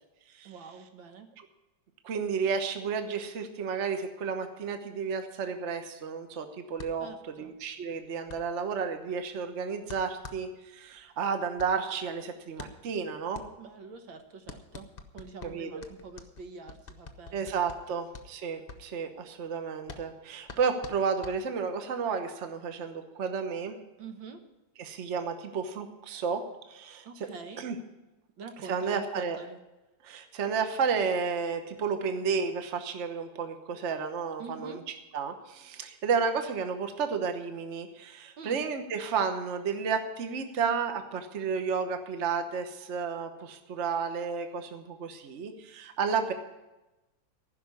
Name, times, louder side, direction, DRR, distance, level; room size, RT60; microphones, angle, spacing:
voice 1, 0.4-1.3 7.0-7.5 13.6-14.9 15.1-18.0 24.0-24.4 27.0-27.6 28.4-29.6 34.4-34.8 38.4-38.6, right 4 dB, 80° right, 6 dB, 1.9 m, -45 dB
voice 2, 2.0-7.1 7.4-13.4 15.4-15.8 17.3-23.8 24.8-26.4 26.7-27.0 27.6-27.7 28.6-29.4 30.0-34.8 35.1-46.3, right 6 dB, 45° right, 7 dB, 1.2 m, -32 dB
sound 1, 6.8-21.9, left 4 dB, 40° left, 0.8 m, -48 dB
15.0 x 6.1 x 9.6 m, 1.0 s
omnidirectional pair, 2.1 m